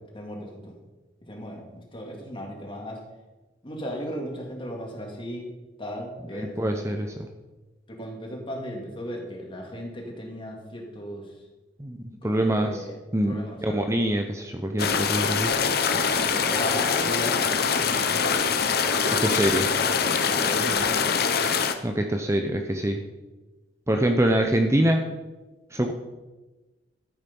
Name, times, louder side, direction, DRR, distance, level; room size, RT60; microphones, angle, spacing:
voice 1, 0.1-0.7 1.2-3.0 3.6-5.5 5.8-6.9 7.9-11.4 12.2-13.0 13.2-13.8 15.8-17.4 17.8-18.6 19.0-19.9 20.2-21.1, equal, 30° left, 0 dB, 2.7 m, -36 dB
voice 2, 6.4-7.1 11.8-12.0 12.2-12.8 13.1-15.5 19.2-19.6 21.8-23.0 23.9-25.0 25.7-25.9, right 1 dB, 15° right, 4 dB, 0.8 m, -24 dB
sound 1, 14.8-21.7, left 6 dB, 60° left, 1.0 m, -24 dB
13.5 x 8.9 x 5.5 m, 1.2 s
head